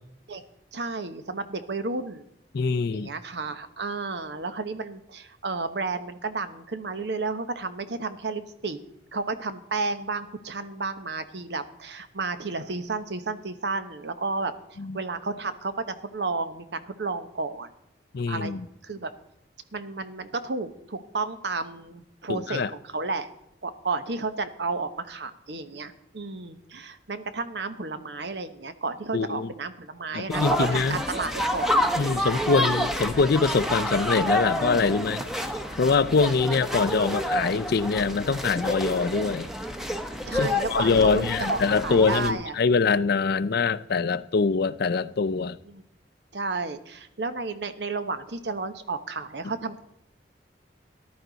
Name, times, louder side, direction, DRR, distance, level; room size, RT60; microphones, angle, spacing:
voice 1, 0.7-2.2 2.9-8.8 9.1-17.7 18.3-18.5 18.8-19.1 19.7-23.3 23.6-31.7 32.4-32.6 40.2-42.6 44.1-44.2 45.6-45.8 46.3-49.8, right 3 dB, 70° right, 1.0 m, -32 dB
voice 2, 2.5-3.1 14.8-15.0 18.1-18.6 22.3-22.7 29.1-29.5 30.1-31.0 32.0-35.3 35.8-39.5 40.3-45.6, left 4 dB, 60° left, 0.5 m, -24 dB
sound 1, 30.3-42.3, equal, ahead, 0.9 m, -29 dB
14.0 x 11.5 x 4.0 m
head